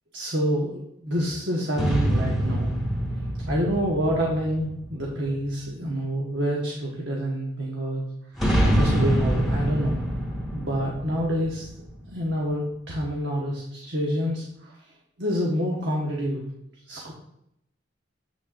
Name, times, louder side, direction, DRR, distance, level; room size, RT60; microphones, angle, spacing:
voice 1, 0.1-2.7 3.5-8.0 8.8-10.0 10.5-11.7 12.1-14.7 15.2-16.4 16.9-17.1, equal, 75° right, -3 dB, 1.2 m, -27 dB
sound 1, 1.7-5.4 8.4-12.1, equal, ahead, 2.1 m, -25 dB
8.2 x 6.2 x 2.5 m, 0.76 s
head